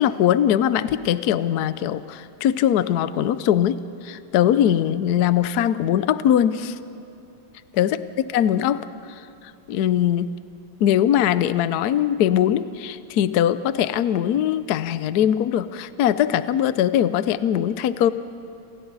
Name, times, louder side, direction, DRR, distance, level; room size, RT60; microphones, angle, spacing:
voice 1, 0.0-3.8 4.0-6.7 7.7-8.0 8.3-8.8 9.7-10.3 10.8-18.1, left 10 dB, 65° left, 13 dB, 1.0 m, -21 dB
28.5 x 27.5 x 4.1 m, 2.8 s
omnidirectional pair, 2.3 m